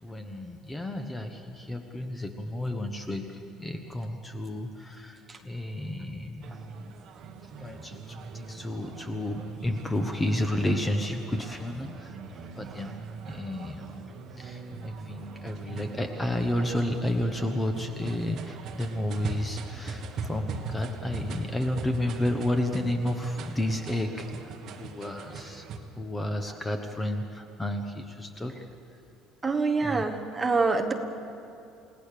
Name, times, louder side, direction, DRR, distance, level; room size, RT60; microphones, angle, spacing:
voice 1, 0.0-6.9 7.6-12.2 12.5-12.9 13.3-14.1 14.4-24.1 24.4-24.5 24.8-25.6 26.0-28.6 29.8-30.1, left 1 dB, 10° left, 5 dB, 1.1 m, -31 dB
sound 1, 6.4-25.8, right 4 dB, 40° right, 1.6 m, -40 dB
voice 2, 29.4-30.9, right 4 dB, 10° right, 4 dB, 1.3 m, -25 dB
29.5 x 17.5 x 6.8 m, 2.6 s
cardioid pair, 165°, 0 cm